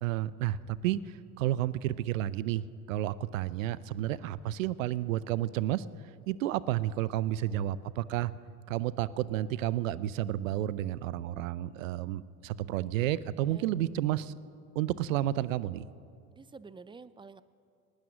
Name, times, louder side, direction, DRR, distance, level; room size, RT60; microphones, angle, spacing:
voice 1, 0.0-1.0 1.4-5.8 6.3-8.3 8.7-14.3 14.8-15.8, right 13 dB, 80° right, 19 dB, 0.6 m, -31 dB
voice 2, 16.3-17.4, right 4 dB, 15° right, 16 dB, 0.5 m, -49 dB
19.5 x 11.5 x 6.2 m, 2.4 s
hypercardioid pair, 80°, 39 cm